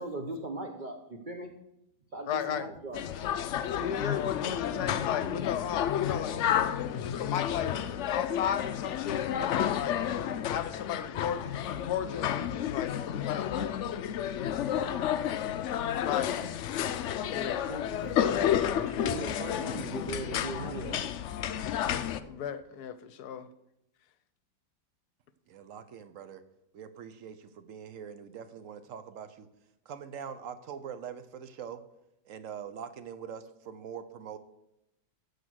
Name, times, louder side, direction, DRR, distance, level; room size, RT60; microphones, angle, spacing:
voice 1, 0.0-1.5 2.1-3.3 17.5-18.2 18.6-21.1, right 2 dB, 40° right, 3 dB, 0.8 m, -39 dB
voice 2, 2.3-2.7 3.7-7.7 8.1-10.0 10.5-13.7 16.0-16.3 17.3-17.6 18.3-18.5 19.5-19.6 22.3-23.5, left 9 dB, 70° left, 13 dB, 1.1 m, -35 dB
sound 1, 2.9-22.2, left 10 dB, 90° left, 0.6 m, -31 dB
voice 3, 25.5-26.4 26.7-29.5 29.9-31.8 32.2-34.4, right 7 dB, 60° right, 11 dB, 0.9 m, -43 dB
14.5 x 5.0 x 6.2 m, 0.85 s
omnidirectional pair, 1.9 m